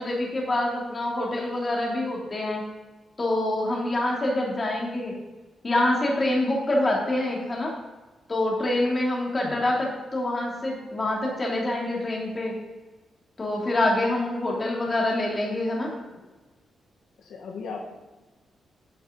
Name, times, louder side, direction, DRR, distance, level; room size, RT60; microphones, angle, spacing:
voice 1, 0.0-2.6 3.2-5.1 5.6-7.7 8.3-12.5 13.4-15.9, left 1 dB, 25° left, -3 dB, 3.0 m, -26 dB
voice 2, 17.2-17.9, left 4 dB, 90° left, 1 dB, 1.5 m, -38 dB
11.5 x 7.1 x 3.9 m, 1.2 s
wide cardioid pair, 135°, 0 cm